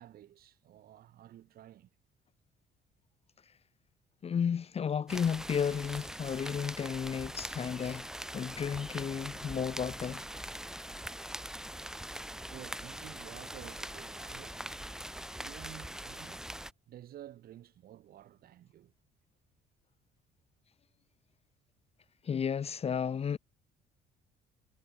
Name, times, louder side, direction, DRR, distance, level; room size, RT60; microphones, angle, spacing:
voice 1, 0.0-1.9 12.3-14.6 15.4-16.4 16.9-18.9, right 12 dB, 65° right, 3.4 m, -51 dB
voice 2, 4.2-8.1 8.3-10.2 22.2-23.4, left 7 dB, 35° left, 1.3 m, -33 dB
sound 1, 5.1-16.7, right 1 dB, 5° right, 2.6 m, -42 dB
cardioid pair, 110°, 17 cm